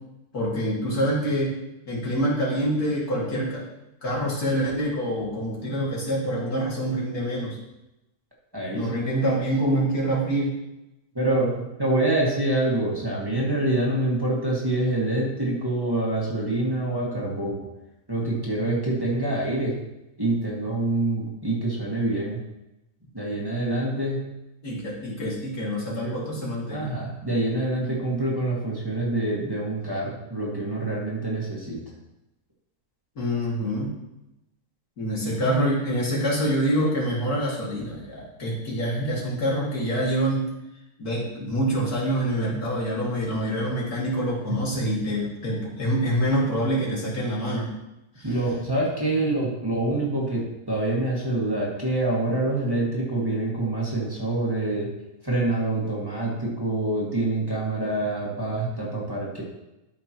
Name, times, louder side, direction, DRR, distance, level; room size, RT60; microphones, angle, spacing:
voice 1, 0.3-1.6 1.9-3.6 4.0-7.6 8.7-10.5 24.6-26.9 33.2-33.9 35.0-40.5 41.0-47.7 48.2-48.3, equal, 80° left, -5 dB, 3.0 m, -26 dB
voice 2, 8.5-9.1 11.1-17.6 18.1-19.7 20.2-22.4 23.1-24.2 26.0-26.1 26.7-31.8 48.2-54.9 55.2-59.4, right 2 dB, 15° right, -5 dB, 1.9 m, -26 dB
12.5 x 5.9 x 3.0 m, 0.94 s
omnidirectional pair, 1.6 m